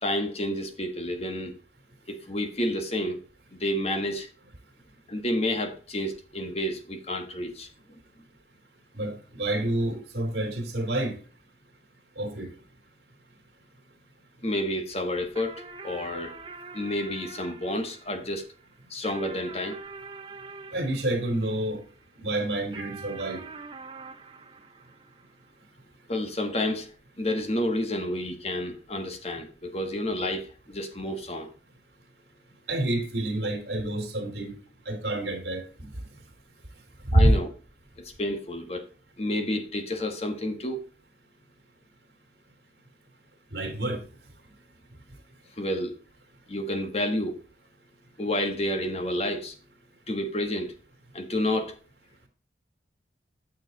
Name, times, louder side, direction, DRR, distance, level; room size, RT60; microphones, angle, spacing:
voice 1, 0.0-1.5 2.1-3.2 3.5-4.3 5.1-8.0 14.4-16.4 16.7-18.4 18.9-19.8 26.1-26.9 27.2-31.5 37.1-37.5 38.0-38.9 39.2-40.8 45.6-45.9 46.5-47.4 48.2-49.5 50.1-50.7 51.1-51.7, left 1 dB, 35° left, 1.4 m, -30 dB
voice 2, 8.9-11.2 12.2-12.5 20.7-21.8 22.2-23.4 32.7-34.5 34.8-35.9 37.0-37.4 43.5-44.0, right 1 dB, 60° right, 2.8 m, -27 dB
sound 1, 15.4-22.1 22.7-25.5, right 4 dB, 25° right, 0.8 m, -45 dB
9.3 x 6.7 x 4.0 m
head